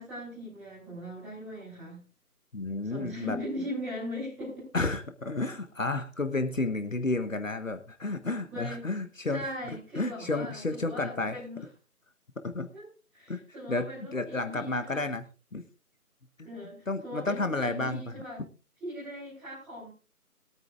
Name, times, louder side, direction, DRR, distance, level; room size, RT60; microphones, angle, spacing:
voice 1, 0.0-2.0 2.8-4.7 8.5-8.8 9.3-11.6 12.7-12.9 13.1-15.0 16.4-18.4 18.8-19.9, equal, 5° right, -10 dB, 3.1 m, -39 dB
voice 2, 2.5-3.4 4.7-9.4 10.0-11.4 12.4-12.7 13.3-13.4 13.7-15.2 15.5-15.6 16.4-16.5 16.9-18.2, left 2 dB, 55° left, 9 dB, 1.3 m, -31 dB
21.5 x 9.0 x 2.4 m, 0.34 s
figure-of-eight pair, 160°, 46 cm